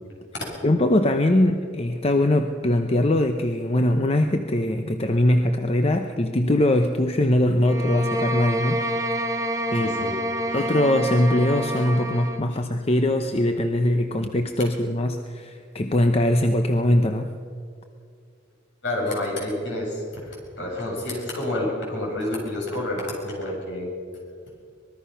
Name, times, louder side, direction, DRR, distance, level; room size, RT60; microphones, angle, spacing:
voice 1, 0.6-8.8 9.7-10.1 10.5-17.3, left 1 dB, 30° left, 6 dB, 0.8 m, -21 dB
sound 1, 7.6-12.5, equal, 20° right, 1.0 m, -28 dB
voice 2, 9.7-10.2 10.5-10.6 18.8-23.9, left 1 dB, 65° left, -2 dB, 7.8 m, -29 dB
25.0 x 20.0 x 5.8 m, 2.2 s
head